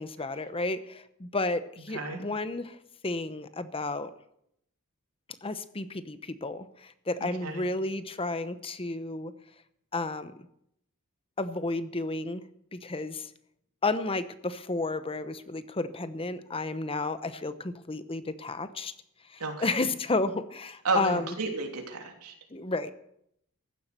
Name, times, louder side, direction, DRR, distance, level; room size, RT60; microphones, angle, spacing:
voice 1, 0.0-2.8 3.0-4.1 5.4-9.3 9.9-10.3 11.4-12.4 12.7-13.3 13.8-18.9 19.3-21.3 22.5-22.9, left 2 dB, 25° left, 12 dB, 0.9 m, -32 dB
voice 2, 7.2-7.7 19.4-19.9 20.8-22.3, right 3 dB, 90° right, 2 dB, 3.2 m, -32 dB
15.0 x 11.5 x 6.8 m, 0.73 s
head